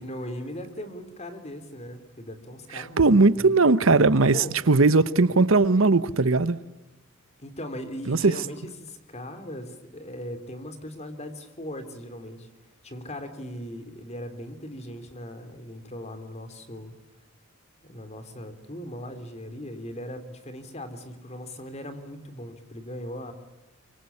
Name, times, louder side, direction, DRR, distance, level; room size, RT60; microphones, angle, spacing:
voice 1, 0.0-3.5 4.3-4.5 7.4-12.5 12.8-16.9 17.8-23.3, equal, 30° left, 3.4 m, -39 dB
voice 2, 2.7-6.6 8.1-8.3, right 3 dB, 70° right, 1.0 m, -19 dB
25.0 x 25.0 x 8.5 m
head